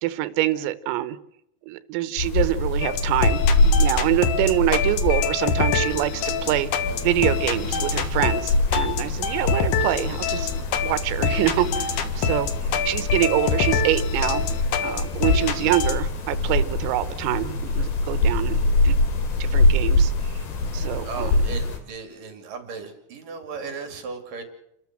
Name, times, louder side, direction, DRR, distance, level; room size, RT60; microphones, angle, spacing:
voice 1, 0.0-1.2 1.7-3.4 3.8-6.7 7.0-10.5 10.8-12.5 12.9-14.4 14.8-18.6 18.9-19.0 19.4-20.1 20.7-21.4, right 14 dB, 90° right, 13 dB, 3.7 m, -25 dB
sound 1, 2.2-21.8, left 2 dB, 55° left, 4.1 m, -24 dB
sound 2, 2.8-15.9, left 6 dB, 90° left, 1.7 m, -26 dB
voice 2, 21.0-24.4, right 5 dB, 45° right, 6 dB, 3.7 m, -36 dB
29.5 x 13.0 x 7.6 m, 0.77 s
omnidirectional pair, 5.9 m